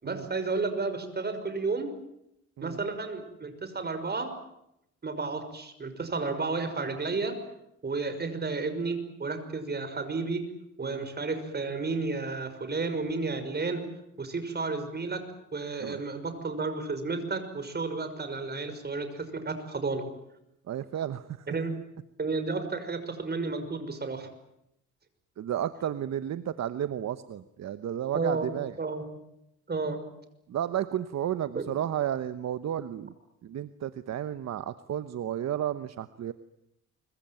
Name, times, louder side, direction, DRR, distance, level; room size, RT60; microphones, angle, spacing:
voice 1, 0.0-1.9 2.6-4.3 5.0-7.4 7.8-10.4 10.8-13.8 14.2-15.3 15.5-20.1 21.5-21.7 22.2-24.3 28.1-28.5 28.8-29.0 29.7-30.0 31.5-31.6, right 3 dB, 35° right, 9 dB, 5.9 m, -32 dB
voice 2, 20.7-21.4 25.4-28.7 30.5-33.1 33.4-36.3, right 10 dB, 60° right, 12 dB, 1.1 m, -32 dB
25.0 x 24.0 x 9.2 m, 0.83 s
cardioid pair, 90°, 30 cm